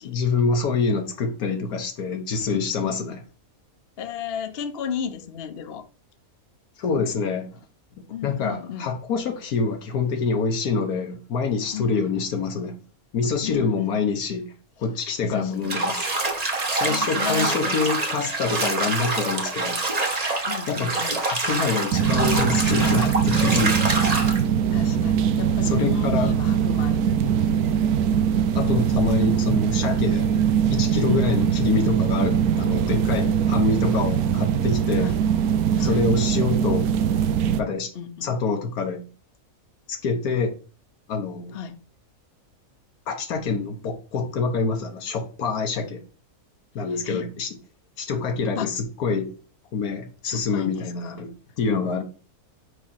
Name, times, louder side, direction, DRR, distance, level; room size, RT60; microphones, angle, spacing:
voice 1, 0.0-3.2 6.8-7.6 8.0-12.8 13.1-14.5 14.8-16.1 16.7-19.8 20.7-20.9 21.2-23.9 25.6-26.3 28.5-30.3 30.7-35.1 35.8-36.9 37.6-37.9 38.2-39.1 39.9-40.6 41.1-41.6 43.1-46.0 46.7-47.6 48.0-49.3 49.7-52.0, left 4 dB, 85° left, 1.6 m, -26 dB
voice 2, 2.5-3.2 4.0-5.9 8.1-8.9 11.7-12.2 13.4-13.9 15.2-15.7 16.8-17.8 20.4-21.2 24.7-27.7 31.0-31.5 35.0-35.2 35.8-36.0 37.9-38.4 41.5-41.8 46.9-47.3 48.6-48.7 50.2-51.2, left 8 dB, 50° left, 0.8 m, -34 dB
Bathtub (filling or washing), 15.6-24.4, right 3 dB, 30° right, 1.0 m, -26 dB
sound 1, 21.9-37.6, right 8 dB, 85° right, 1.1 m, -22 dB
5.3 x 4.9 x 5.7 m
omnidirectional pair, 1.5 m